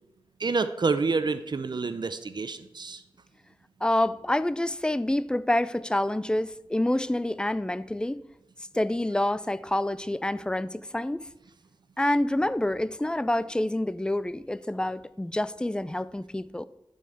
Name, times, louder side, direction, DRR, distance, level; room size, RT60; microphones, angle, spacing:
voice 1, 0.4-3.0, right 4 dB, 55° right, 0.6 m, -28 dB
voice 2, 3.8-8.2 8.7-11.3 12.0-16.7, left 1 dB, 10° left, 0.4 m, -27 dB
12.0 x 5.6 x 6.5 m
wide cardioid pair, 95°, 9 cm